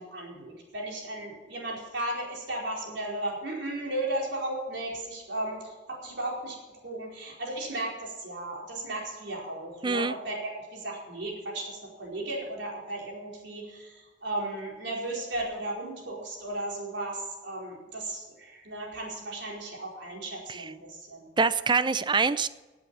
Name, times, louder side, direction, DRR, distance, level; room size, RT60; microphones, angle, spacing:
voice 1, 0.0-21.3, right 1 dB, 70° right, -2 dB, 4.8 m, -35 dB
voice 2, 9.8-10.2 20.5-20.7 21.4-22.5, right 4 dB, 25° right, 14 dB, 0.5 m, -25 dB
16.5 x 8.7 x 7.2 m, 1.2 s
head